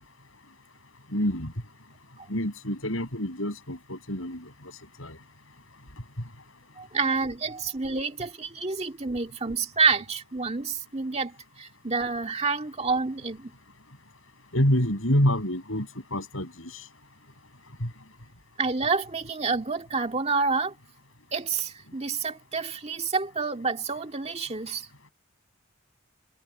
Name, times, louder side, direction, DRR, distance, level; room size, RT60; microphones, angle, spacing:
voice 1, 1.1-1.5 2.3-4.5 5.0-5.2 14.5-16.9 17.8-17.9, equal, 80° left, 7.8 m, -27 dB
voice 2, 6.8-13.5 18.6-20.7 21.3-24.9, right 4 dB, 30° right, 2.1 m, -28 dB
head